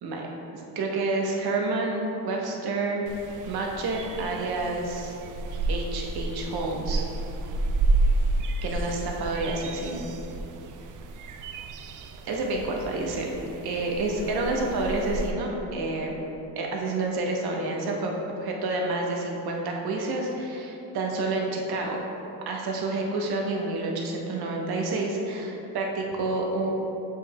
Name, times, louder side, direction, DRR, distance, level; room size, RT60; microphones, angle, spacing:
voice 1, 0.5-3.1 3.5-5.2 5.7-7.0 8.6-10.1 12.3-13.4 13.6-16.1 16.6-18.1 18.4-22.0 22.5-26.7, right 2 dB, 65° right, 0 dB, 1.1 m, -29 dB
sound 1, 3.1-15.3, right 2 dB, 50° right, 0.5 m, -31 dB
7.0 x 6.4 x 2.3 m, 3.0 s
cardioid pair, 90°, 40 cm